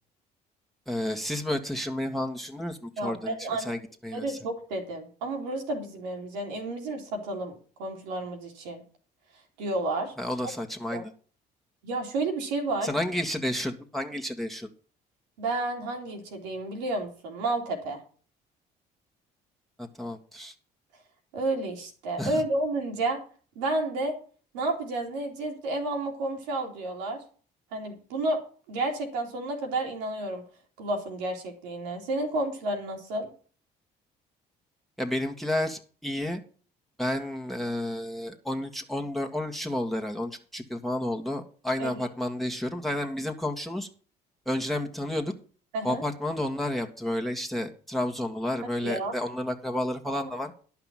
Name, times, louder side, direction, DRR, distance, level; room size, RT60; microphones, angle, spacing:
voice 1, 0.9-3.4 3.7-4.4 10.2-11.1 12.8-14.7 19.8-20.5 22.2-22.3 35.0-36.4 37.0-43.9 44.5-45.3 45.8-50.5, left 1 dB, ahead, 3 dB, 1.8 m, -31 dB
voice 2, 3.0-3.7 4.1-7.5 7.8-8.8 9.6-10.1 10.9-11.1 11.8-12.9 15.4-18.0 21.3-23.2 23.5-24.2 24.5-27.2 27.7-28.4 28.7-30.4 30.8-33.3 41.8-42.1 45.7-46.0 48.8-49.2 50.1-50.2, right 2 dB, 85° right, 2 dB, 2.7 m, -31 dB
11.0 x 5.9 x 7.4 m, 0.41 s
hypercardioid pair, 55°, 21 cm